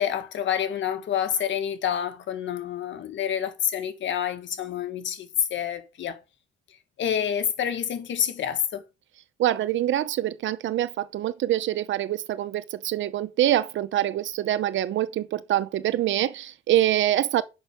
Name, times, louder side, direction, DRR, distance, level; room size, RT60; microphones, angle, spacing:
voice 1, 0.0-6.2 7.0-8.8, left 9 dB, 70° left, 1.6 m, -28 dB
voice 2, 9.4-17.4, right 12 dB, 70° right, 0.9 m, -25 dB
6.4 x 5.5 x 6.4 m
cardioid pair, 90°, 20 cm